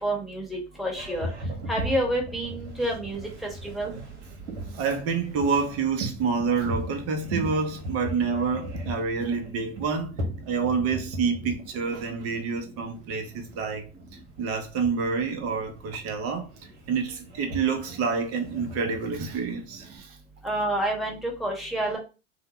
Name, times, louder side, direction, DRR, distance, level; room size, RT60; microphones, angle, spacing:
voice 1, 0.0-1.3 1.7-3.3 3.6-3.9 20.4-22.0, right 1 dB, ahead, 1.1 m, -28 dB
Boat Water vehicle, 1.0-20.0, right 1 dB, 85° right, 0.9 m, -38 dB
voice 2, 4.7-10.2 10.4-13.9 14.4-16.5 16.9-20.2, right 5 dB, 40° right, 0.8 m, -28 dB
2.8 x 2.1 x 2.9 m
hypercardioid pair, 85°, 35 cm